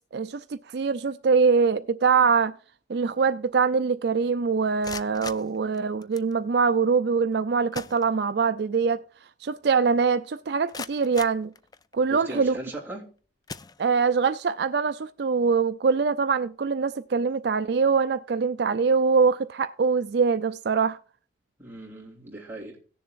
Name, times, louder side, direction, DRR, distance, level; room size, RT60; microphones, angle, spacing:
voice 1, 0.1-2.5 2.9-9.0 9.4-11.5 11.9-12.5 13.8-21.0, right 5 dB, 60° right, 0.4 m, -23 dB
sound 1, 4.6-6.3 7.3-7.4 7.7-8.6 9.0-9.1 9.6-9.7 10.3-12.1 12.8-13.0 13.4-14.3, left 5 dB, 20° left, 0.4 m, -42 dB
voice 2, 12.1-13.0 21.6-22.8, right 1 dB, 10° right, 3.0 m, -38 dB
18.0 x 7.0 x 2.5 m
head